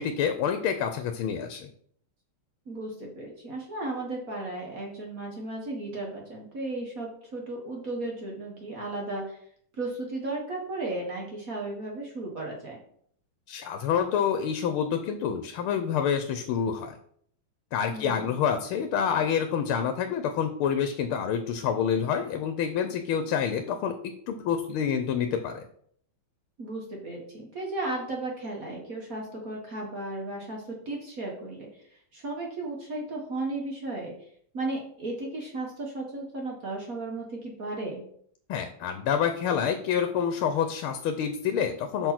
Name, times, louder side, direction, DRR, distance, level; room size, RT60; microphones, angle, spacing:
voice 1, 0.0-1.7 13.5-17.0 17.7-23.9 24.3-25.7 38.5-42.1, left 7 dB, 85° left, 8 dB, 1.5 m, -27 dB
voice 2, 2.7-9.4 9.7-12.8 17.9-18.3 26.6-34.1 34.5-38.0, right 2 dB, 45° right, -1 dB, 1.6 m, -35 dB
5.8 x 4.5 x 5.8 m, 0.64 s
omnidirectional pair, 2.3 m